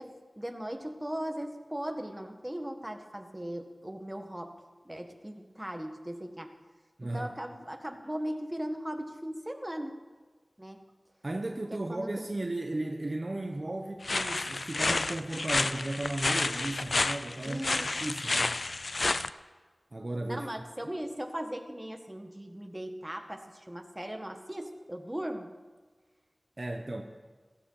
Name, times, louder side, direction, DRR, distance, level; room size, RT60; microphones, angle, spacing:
voice 1, 0.0-4.5 4.8-6.5 7.1-10.0 10.6-10.8 11.9-12.3 17.4-17.9 20.3-25.5, right 1 dB, 15° right, 5 dB, 1.7 m, -38 dB
voice 2, 7.0-7.3 11.2-18.6 19.9-20.5 26.6-27.0, right 2 dB, 50° right, 3 dB, 1.1 m, -35 dB
sound 1, 14.0-19.3, left 3 dB, 65° left, 0.5 m, -30 dB
15.5 x 13.5 x 5.7 m, 1.4 s
wide cardioid pair, 45°, 0 cm